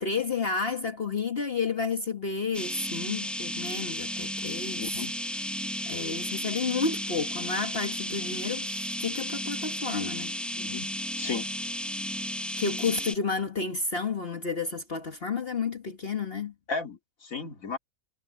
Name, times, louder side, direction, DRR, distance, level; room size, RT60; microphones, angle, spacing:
voice 1, 0.0-4.8 5.9-8.7 9.0-10.3 12.6-16.5, left 4 dB, 45° left, 1.7 m, -31 dB
sound 1, 2.5-13.2, equal, ahead, 1.1 m, -33 dB
voice 2, 4.8-5.1 10.6-10.9 11.2-11.5 16.7-17.8, left 4 dB, 65° left, 3.0 m, -34 dB
omnidirectional pair, 1.5 m